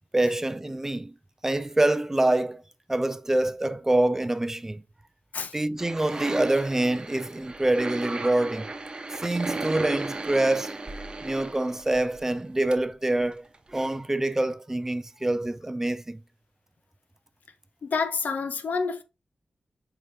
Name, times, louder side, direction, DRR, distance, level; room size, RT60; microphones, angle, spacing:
voice 1, 0.1-1.1 1.4-2.6 2.9-4.8 5.5-8.7 9.1-10.7 11.2-13.4 13.7-16.2, right 1 dB, 15° right, 0.4 m, -25 dB
sound 1, 5.8-12.3 12.7-12.8 13.1-13.2 13.5-13.6 13.8-13.9, right 2 dB, 35° right, 0.9 m, -35 dB
voice 2, 17.8-19.0, left 5 dB, 80° left, 0.9 m, -28 dB
7.8 x 4.8 x 2.7 m
wide cardioid pair, 130°, 3 cm